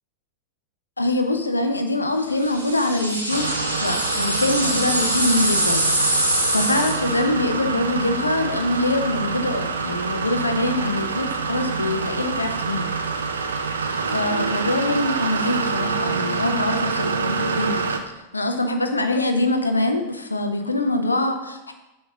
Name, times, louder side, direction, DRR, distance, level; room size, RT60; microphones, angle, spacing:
voice 1, 1.0-6.0 6.5-12.9 14.1-17.9 18.3-21.7, left 2 dB, 80° left, 6 dB, 0.7 m, -24 dB
sound 1, 2.4-7.2, right 1 dB, 90° right, 1.1 m, -24 dB
sound 2, 3.3-18.0, right 4 dB, 70° right, 0.6 m, -26 dB
6.9 x 3.3 x 5.7 m, 0.99 s
figure-of-eight pair, 90°, 0 cm